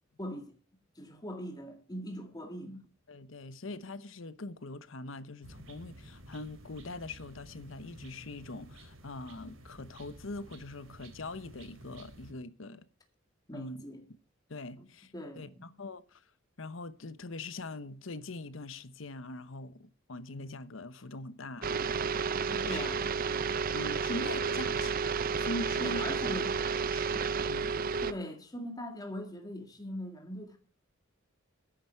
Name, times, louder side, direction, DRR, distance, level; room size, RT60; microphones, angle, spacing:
voice 1, 0.2-0.5 1.0-2.8 13.5-14.0 14.8-14.9 15.1-15.7 22.4-23.2 25.8-26.5 28.0-30.6, equal, 20° left, 2.1 m, -41 dB
voice 2, 3.1-12.9 13.5-13.8 14.5-16.2 16.6-22.0 22.3-22.4 22.7-22.8 23.4-25.0 25.4-26.4 26.9-27.2 27.5-27.7, left 2 dB, 70° left, 0.9 m, -43 dB
sound 1, 5.4-12.3, right 1 dB, 75° right, 3.1 m, -52 dB
sound 2, 21.6-28.1, right 5 dB, 45° right, 0.5 m, -31 dB
12.0 x 10.0 x 4.5 m
head